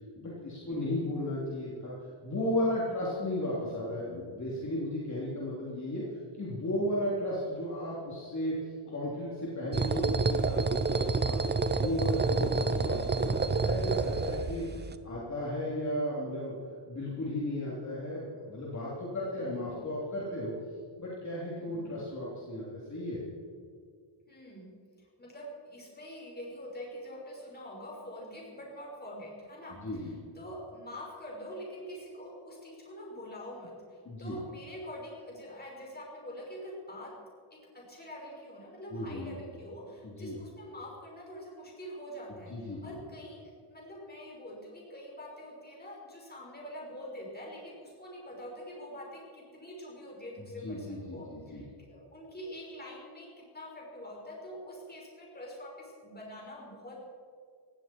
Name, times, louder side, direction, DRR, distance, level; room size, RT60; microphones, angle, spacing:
voice 1, 0.1-1.9 2.2-6.0 6.4-8.5 8.9-11.4 11.7-14.6 15.0-16.5 16.9-20.5 21.0-23.2 29.8-30.1 34.0-34.4 38.9-39.3 40.0-40.4 42.5-43.0 50.6-51.6, left 1 dB, 35° left, -6 dB, 3.4 m, -35 dB
sound 1, 9.7-14.9, right 4 dB, 20° right, 0.6 m, -28 dB
voice 2, 24.3-24.7 25.0-37.1 37.5-43.4 43.7-57.1, equal, 20° left, -2 dB, 5.2 m, -45 dB
18.5 x 16.0 x 4.6 m, 2.1 s
wide cardioid pair, 150°, 49 cm